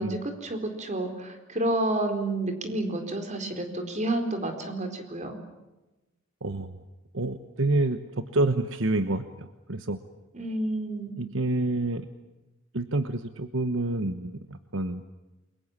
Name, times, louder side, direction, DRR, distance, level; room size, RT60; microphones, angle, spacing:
voice 1, 0.0-5.4 10.3-11.1, right 1 dB, 35° right, 5 dB, 4.4 m, -30 dB
voice 2, 6.4-6.8 7.1-10.0 11.2-12.1 12.7-15.0, right 2 dB, 70° right, 10 dB, 1.2 m, -28 dB
29.5 x 23.0 x 7.5 m, 1.1 s
head